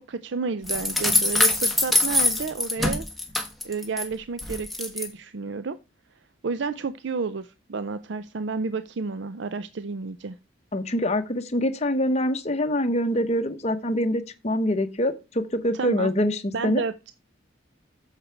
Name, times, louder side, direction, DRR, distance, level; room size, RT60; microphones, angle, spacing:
voice 1, 0.0-3.1 3.6-5.8 6.4-10.4 15.7-16.1 16.5-17.1, right 4 dB, 60° right, 0.5 m, -31 dB
sound 1, 0.7-4.0 4.4-5.1, left 1 dB, ahead, 1.2 m, -23 dB
voice 2, 10.7-16.8, left 1 dB, 35° left, 0.8 m, -25 dB
8.7 x 6.6 x 4.5 m
head